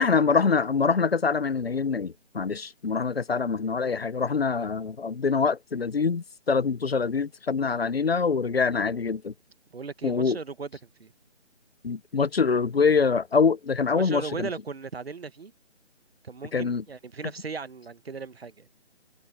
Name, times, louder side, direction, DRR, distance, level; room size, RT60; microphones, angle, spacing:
voice 1, 0.0-9.3 10.0-10.4 11.8-14.5 16.5-16.8, left 5 dB, 55° left, 1.0 m, -25 dB
voice 2, 9.7-10.7 11.0-11.1 13.9-15.5 16.2-18.7, right 5 dB, 60° right, 1.2 m, -37 dB
figure-of-eight pair, 160°, 35 cm